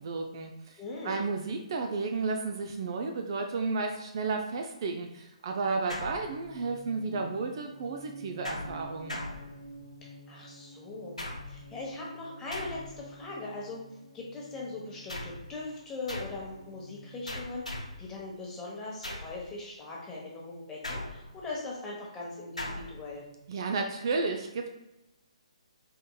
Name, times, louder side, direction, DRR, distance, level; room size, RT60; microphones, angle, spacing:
voice 1, 0.0-9.2 23.5-24.7, right 4 dB, 45° right, 3 dB, 0.4 m, -33 dB
voice 2, 0.8-1.2 10.0-13.8 14.1-23.2, left 3 dB, 15° left, -4 dB, 0.9 m, -40 dB
sound 1, 5.9-6.7 8.4-10.0 11.2-11.7 12.5-13.1 15.1-15.5 16.1-16.5 17.3-18.1 19.0-19.4 20.8-21.5 22.6-23.0, left 1 dB, 85° left, 0.8 m, -39 dB
sound 2, 6.3-18.3, right 1 dB, 55° left, 0.5 m, -50 dB
3.8 x 3.7 x 2.2 m, 0.94 s
figure-of-eight pair, 135°, 3 cm